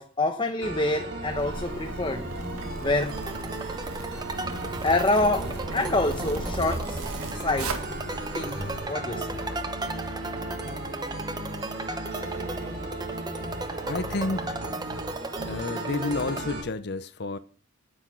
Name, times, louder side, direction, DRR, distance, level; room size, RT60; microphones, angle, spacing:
voice 1, 0.0-2.3 2.8-3.2 4.8-7.8 8.3-9.4, left 2 dB, 20° left, 0.9 m, -27 dB
sound 1, 0.6-16.6, right 2 dB, 50° right, 4.0 m, -36 dB
Zipper (clothing), 1.2-8.8, right 2 dB, 90° right, 1.8 m, -36 dB
sound 2, 3.1-16.4, right 2 dB, 20° right, 0.8 m, -37 dB
voice 2, 13.9-14.6 15.5-17.4, left 3 dB, 50° left, 0.7 m, -30 dB
10.0 x 8.9 x 6.1 m
head